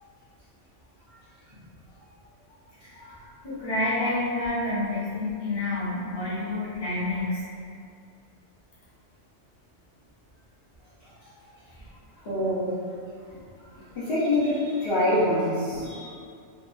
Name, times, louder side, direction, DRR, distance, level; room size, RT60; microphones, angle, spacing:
voice 1, 3.4-7.4 11.7-11.9 13.7-13.8 15.7-15.8, left 2 dB, 25° left, -11 dB, 0.7 m, -29 dB
voice 2, 12.2-12.7 13.9-16.1, left 1 dB, 60° left, -11 dB, 0.8 m, -25 dB
2.9 x 2.2 x 2.4 m, 2.3 s
omnidirectional pair, 1.2 m